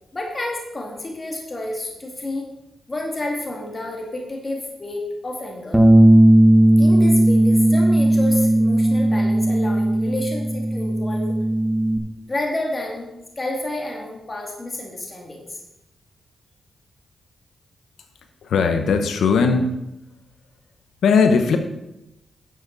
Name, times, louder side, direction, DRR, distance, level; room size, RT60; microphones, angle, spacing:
voice 1, 0.1-2.5 2.9-5.8 6.8-11.4 12.3-13.1 13.4-15.6, left 1 dB, 30° left, 0 dB, 2.2 m, -30 dB
Bass guitar, 5.7-12.0, right 1 dB, 5° right, 1.2 m, -16 dB
voice 2, 18.4-19.8 21.0-21.6, left 5 dB, 85° left, 7 dB, 0.8 m, -18 dB
11.0 x 7.5 x 4.0 m, 0.90 s
cardioid pair, 70°, 0 cm